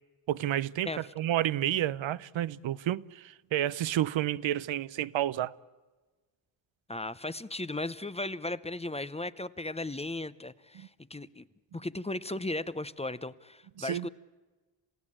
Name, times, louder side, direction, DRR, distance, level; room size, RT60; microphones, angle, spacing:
voice 1, 0.3-5.5 10.8-10.9 13.8-14.1, right 12 dB, 85° right, 0.7 m, -30 dB
voice 2, 6.9-11.5 11.7-14.1, left 2 dB, 15° left, 0.7 m, -36 dB
28.0 x 16.0 x 8.7 m
cardioid pair, 75°, 45 cm